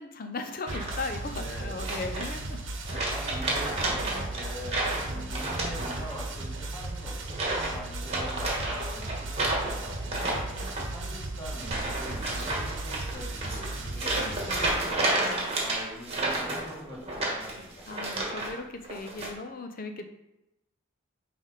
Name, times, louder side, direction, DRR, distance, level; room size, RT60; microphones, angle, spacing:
voice 1, 0.0-2.6 2.9-3.2 4.1-4.3 5.1-5.3 10.6-10.7 12.2-12.4 14.0-14.7 15.2-15.5 17.9-20.1, left 3 dB, 40° left, 6 dB, 0.7 m, -38 dB
sound 1, 0.7-1.2 1.8-2.5 2.8-6.3 6.6-6.9 7.3-7.8 8.0-18.5 18.8-19.3, right 2 dB, 30° right, 1.5 m, -31 dB
sound 2, 0.7-14.7, right 2 dB, 60° right, 1.0 m, -36 dB
voice 2, 1.2-1.8 2.9-10.5 10.9-15.1 15.6-17.9, equal, 25° left, -6 dB, 2.3 m, -44 dB
9.2 x 3.4 x 4.1 m, 0.92 s
head